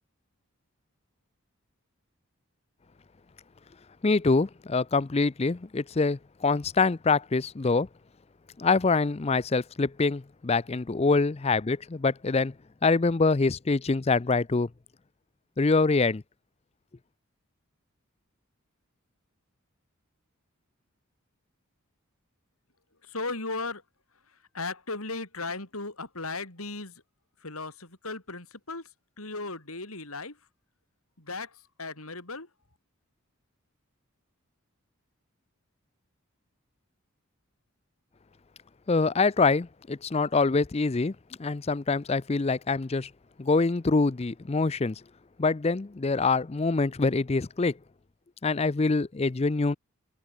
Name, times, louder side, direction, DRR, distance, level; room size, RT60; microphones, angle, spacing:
voice 1, 4.0-7.9 8.6-12.5 12.8-14.7 15.6-16.2 38.9-43.1 43.4-45.0 45.4-47.7 48.4-49.8, left 3 dB, 30° left, 0.5 m, -25 dB
voice 2, 23.1-23.8 24.5-26.9 27.4-28.9 29.2-30.4 31.2-32.5, left 3 dB, 85° left, 6.9 m, -36 dB
head